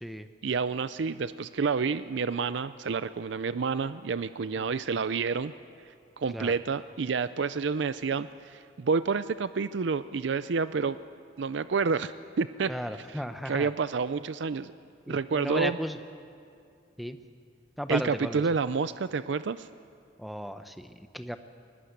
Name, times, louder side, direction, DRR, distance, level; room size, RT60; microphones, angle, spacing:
voice 1, 0.4-5.5 6.2-11.0 11.4-12.7 13.1-14.7 15.1-15.8 17.9-19.7, right 5 dB, 75° right, 14 dB, 0.5 m, -29 dB
voice 2, 12.7-13.7 15.1-16.0 17.0-17.2 17.8-18.4 20.2-21.4, equal, ahead, 9 dB, 0.7 m, -35 dB
21.5 x 20.0 x 8.1 m, 2.5 s
head